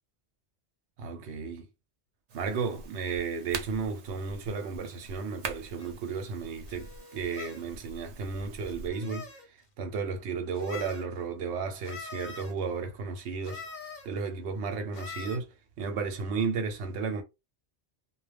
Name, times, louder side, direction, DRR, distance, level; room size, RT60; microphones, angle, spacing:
voice 1, 1.0-1.7 2.3-9.3 9.8-13.6 14.1-15.5 15.8-17.2, right 5 dB, 85° right, 0.9 m, -33 dB
sound 1, 2.3-8.9, right 4 dB, 55° right, 0.4 m, -44 dB
sound 2, 5.8-5.9 6.7-7.6 8.7-9.5 10.5-11.1 11.8-12.5 13.4-14.1 14.9-15.4, left 4 dB, 50° left, 0.7 m, -43 dB
2.3 x 2.1 x 3.2 m
omnidirectional pair, 1.1 m